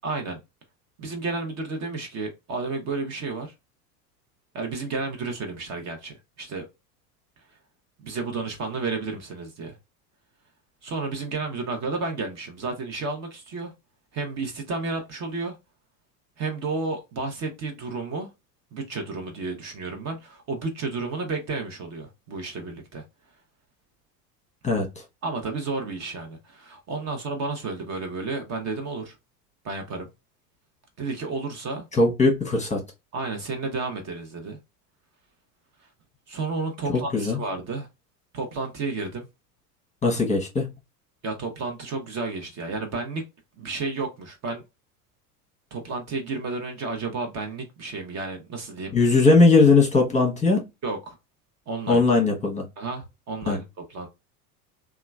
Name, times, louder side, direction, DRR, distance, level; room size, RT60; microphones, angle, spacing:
voice 1, 0.0-0.4 1.0-3.5 4.5-6.6 8.0-9.8 10.8-13.7 14.1-15.5 16.4-18.3 18.7-23.0 25.2-29.1 29.6-30.1 31.0-31.8 33.1-34.6 36.3-37.9 38.3-39.3 41.2-43.2 43.6-44.6 45.7-48.9 50.8-51.2 51.7-52.0 52.8-53.6 53.9-54.1, right 3 dB, 35° right, 0.7 m, -31 dB
voice 2, 31.9-32.8 36.9-37.4 40.0-40.7 48.9-50.6 51.9-52.6 53.5-53.6, left 3 dB, 15° left, 0.9 m, -19 dB
2.9 x 2.3 x 2.2 m
hypercardioid pair, 85°, 47 cm